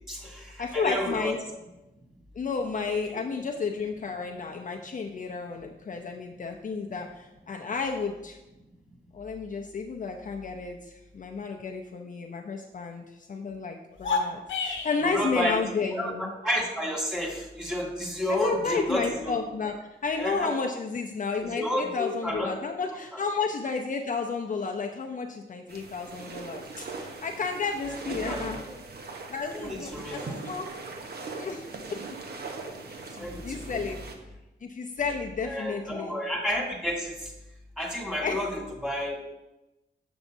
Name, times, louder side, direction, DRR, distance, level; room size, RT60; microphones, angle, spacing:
voice 1, 0.1-1.4 3.1-3.2 15.0-15.6 15.9-19.3 20.2-20.6 21.4-22.5 23.1-23.2 28.1-28.8 29.5-30.4 33.1-33.9 35.4-37.3 37.8-39.2, equal, 5° right, -3 dB, 2.1 m, -31 dB
voice 2, 0.6-1.4 2.4-8.4 9.1-16.3 18.4-19.7 20.0-28.6 29.3-30.7 31.3-32.0 32.9-34.0 34.6-36.2 38.2-38.5, left 4 dB, 40° left, 2 dB, 0.5 m, -32 dB
sound 1, 13.9-15.1, left 4 dB, 80° left, 1.0 m, -29 dB
sound 2, 25.7-34.2, right 3 dB, 55° right, 0.9 m, -40 dB
7.2 x 6.9 x 2.7 m, 1.0 s
cardioid pair, 75°, 19 cm